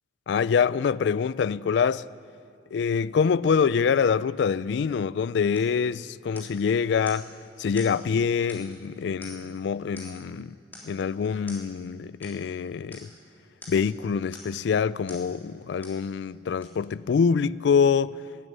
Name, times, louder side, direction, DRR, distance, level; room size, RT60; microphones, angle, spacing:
voice 1, 0.3-2.0 2.7-7.3 7.6-10.6 10.8-13.1 13.7-18.2, left 6 dB, 65° left, 0.3 m, -25 dB
sound 1, 5.5-5.8 6.4-6.6 7.1-7.3 7.8-8.0 8.5-8.8 9.2-9.6 10.0-10.3 10.7-11.0 11.5-11.7 12.2-12.4 12.9-13.1 13.6-13.9 14.3-14.6 15.1-15.3 15.8-16.0 16.6-16.7, left 2 dB, 10° left, 3.3 m, -45 dB
13.5 x 9.4 x 9.4 m
head